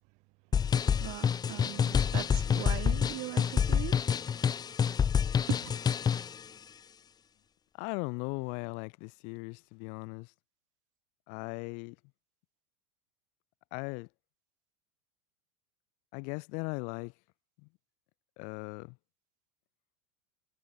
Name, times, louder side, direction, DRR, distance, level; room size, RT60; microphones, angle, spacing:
sound 1, 0.5-6.4, left 7 dB, 30° left, 4.1 m, -28 dB
voice 1, 1.0-4.1 5.5-5.6, right 28 dB, 55° right, 5.7 m, -40 dB
voice 2, 7.8-10.3 11.3-11.9 13.7-14.1 16.1-17.1 17.6-17.7 18.4-19.0, left 35 dB, 60° left, 5.2 m, -38 dB
hypercardioid pair, 85°, 14 cm